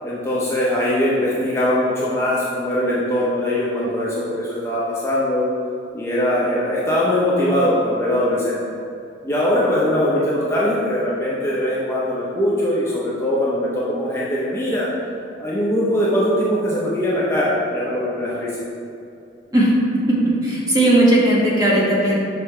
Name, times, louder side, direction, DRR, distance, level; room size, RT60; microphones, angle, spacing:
voice 1, 0.0-5.5 5.9-8.6 9.2-14.9 15.4-18.5, left 1 dB, 15° left, -7 dB, 0.7 m, -21 dB
voice 2, 19.5-22.2, right 1 dB, 20° right, -5 dB, 1.2 m, -17 dB
5.9 x 5.2 x 3.3 m, 2.6 s
head